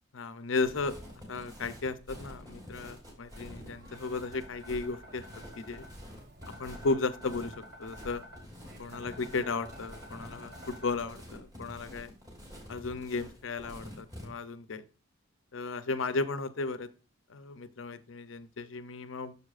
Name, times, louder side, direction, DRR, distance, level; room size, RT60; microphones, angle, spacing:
voice 1, 0.1-1.0 1.3-5.2 5.6-5.9 6.6-8.2 8.8-12.1 12.7-14.8 15.5-16.9 17.3-19.4, left 3 dB, 70° left, 13 dB, 0.6 m, -35 dB
sound 1, 0.6-14.3, equal, 20° right, 3.0 m, -48 dB
sound 2, 3.3-11.1, equal, 60° right, 1.7 m, -51 dB
9.6 x 6.8 x 2.4 m, 0.35 s
head